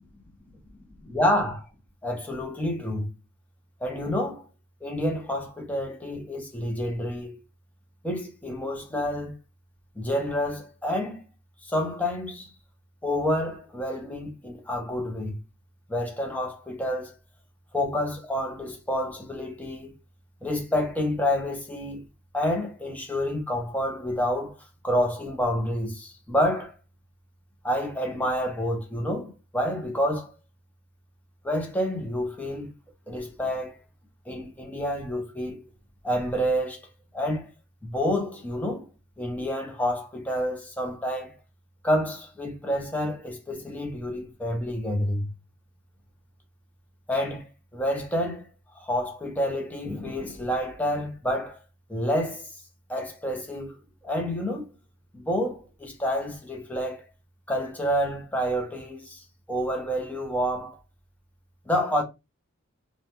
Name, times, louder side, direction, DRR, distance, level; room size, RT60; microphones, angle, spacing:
voice 1, 1.0-1.7 2.0-3.1 3.8-4.5 4.8-7.4 8.0-9.4 10.0-11.2 11.6-12.5 13.0-15.4 15.9-17.2 17.7-19.9 20.4-22.0 22.3-24.6 24.8-26.7 27.6-30.3 31.4-32.7 33.1-33.8 34.3-35.7 36.0-36.9 37.1-37.5 37.8-38.9 39.2-41.4 41.8-45.3 47.1-48.5 48.7-51.6 51.9-52.5 52.9-53.8 54.0-54.7 55.1-57.1 57.5-60.8 61.7-62.0, equal, 5° left, 0.5 m, -28 dB
2.3 x 2.1 x 2.8 m
head